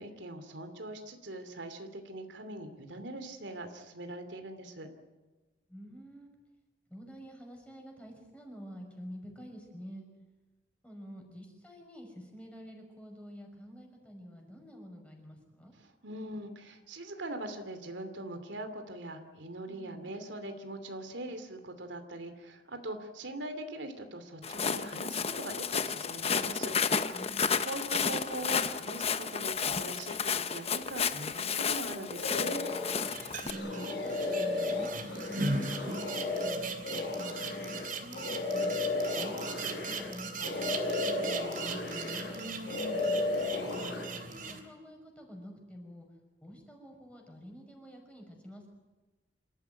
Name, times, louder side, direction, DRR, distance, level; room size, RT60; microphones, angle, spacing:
voice 1, 0.0-4.9 15.8-26.7 27.6-32.6 42.3-43.3, right 1 dB, 85° right, 7 dB, 2.7 m, -42 dB
voice 2, 5.7-6.3 6.9-10.0 10.8-15.7 19.7-20.1 27.1-27.8 33.4-37.7 38.0-38.7 39.2-42.3 43.9-46.1 46.4-48.7, equal, 5° left, 1 dB, 6.0 m, -48 dB
Walk footsteps, 24.4-33.5, left 6 dB, 35° left, 0.9 m, -32 dB
sound 1, 32.1-33.1 33.5-40.1 40.4-42.4 42.6-44.1, left 2 dB, 75° left, 5.2 m, -34 dB
sound 2, 33.0-44.6, right 3 dB, 50° right, 3.2 m, -39 dB
27.0 x 14.5 x 9.3 m, 1.2 s
head